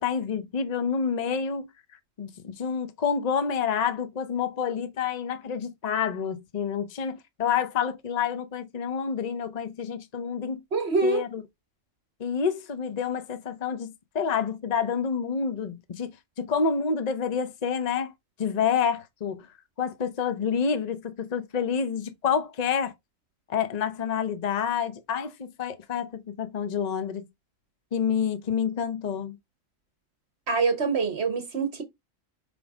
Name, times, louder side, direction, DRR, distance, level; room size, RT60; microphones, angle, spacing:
voice 1, 0.0-1.7 2.2-10.6 11.0-11.4 12.2-16.1 16.4-18.1 18.4-19.5 19.8-22.9 23.5-27.3 27.9-29.4, left 6 dB, 40° left, 0.8 m, -28 dB
voice 2, 10.7-11.2 30.5-31.8, right 4 dB, 55° right, 1.3 m, -25 dB
5.5 x 3.5 x 4.8 m
omnidirectional pair, 1.4 m